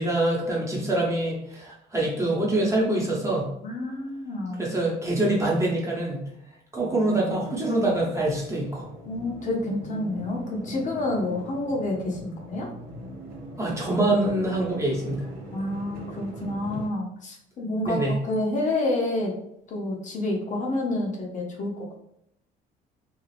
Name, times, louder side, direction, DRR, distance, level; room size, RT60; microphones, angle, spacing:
voice 1, 0.0-3.5 4.6-6.3 6.7-8.9 13.6-15.2 17.8-18.1, right 1 dB, 15° right, -4 dB, 1.0 m, -25 dB
voice 2, 3.6-4.6 9.0-12.7 15.5-19.3 19.7-21.9, left 2 dB, 45° left, -1 dB, 0.7 m, -29 dB
sound 1, 6.8-16.9, right 1 dB, 85° right, 0.8 m, -41 dB
2.7 x 2.4 x 3.2 m, 0.75 s
cardioid pair, 110°, 17 cm